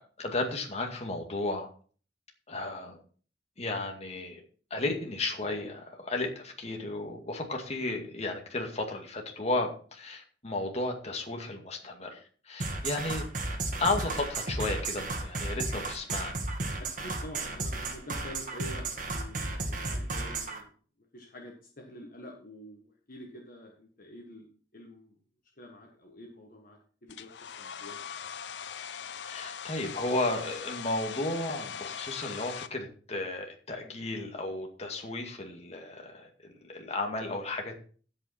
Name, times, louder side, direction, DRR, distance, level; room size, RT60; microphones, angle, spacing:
voice 1, 0.0-1.7 2.5-3.0 3.6-4.4 4.7-13.3 13.8-16.3 29.2-36.3 36.7-37.8, left 2 dB, 40° left, 2 dB, 2.1 m, -34 dB
sound 1, 12.6-20.6, right 2 dB, 50° right, 1.9 m, -33 dB
voice 2, 16.8-25.2 25.6-28.0, equal, 55° left, 1 dB, 1.6 m, -48 dB
Domestic sounds home sounds, 27.1-32.7, left 8 dB, 85° left, 0.6 m, -41 dB
15.5 x 5.6 x 4.3 m, 0.42 s
head